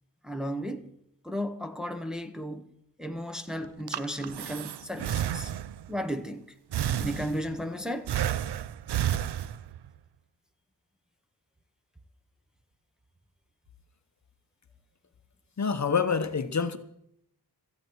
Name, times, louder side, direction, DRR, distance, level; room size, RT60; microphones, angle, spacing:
voice 1, 0.2-0.9 1.2-2.7 3.0-5.5 5.9-6.5 7.0-8.1, equal, ahead, 0.9 m, -34 dB
Breathing, 3.6-5.9 6.7-7.6 8.1-9.9, right 10 dB, 85° right, 0.6 m, -31 dB
voice 2, 15.6-16.8, left 5 dB, 45° left, 0.9 m, -27 dB
16.5 x 14.0 x 4.6 m
wide cardioid pair, 155°, 39 cm